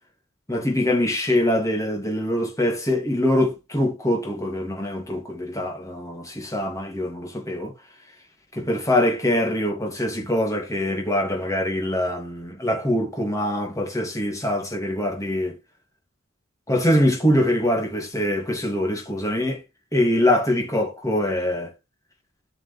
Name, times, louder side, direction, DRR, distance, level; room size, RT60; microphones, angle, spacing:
voice 1, 0.5-7.7 8.5-15.6 16.7-19.6 19.9-21.7, left 1 dB, 15° left, 2.9 m, -23 dB
12.0 x 6.0 x 3.5 m
head